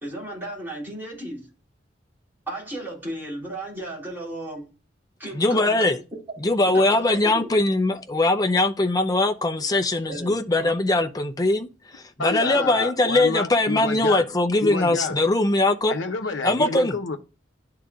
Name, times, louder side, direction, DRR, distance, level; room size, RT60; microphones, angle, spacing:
voice 1, 0.0-1.5 2.5-4.7 5.2-6.0 6.7-7.5 10.1-10.3 12.4-12.9, right 1 dB, 10° right, 3.2 m, -34 dB
voice 2, 5.3-6.0 6.4-16.0 16.4-17.0, left 2 dB, 20° left, 0.6 m, -21 dB
voice 3, 12.2-14.3 14.6-15.2 15.9-17.2, left 3 dB, 80° left, 0.8 m, -29 dB
11.0 x 3.8 x 2.3 m
head